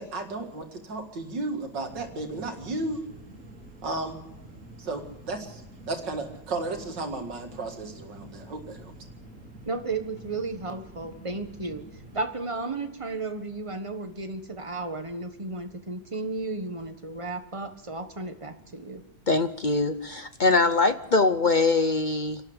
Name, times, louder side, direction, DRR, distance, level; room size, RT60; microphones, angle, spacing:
voice 1, 0.0-3.0 3.8-4.2 4.8-5.6 5.9-8.9, right 2 dB, 80° right, 4 dB, 2.7 m, -34 dB
sound 1, 1.8-12.2, right 1 dB, 45° right, 2.9 m, -48 dB
voice 2, 9.7-11.8 12.1-19.0, right 3 dB, 20° right, 7 dB, 1.3 m, -34 dB
voice 3, 19.3-22.4, left 3 dB, 55° left, 10 dB, 0.5 m, -23 dB
27.5 x 12.0 x 8.1 m, 0.87 s
omnidirectional pair, 1.9 m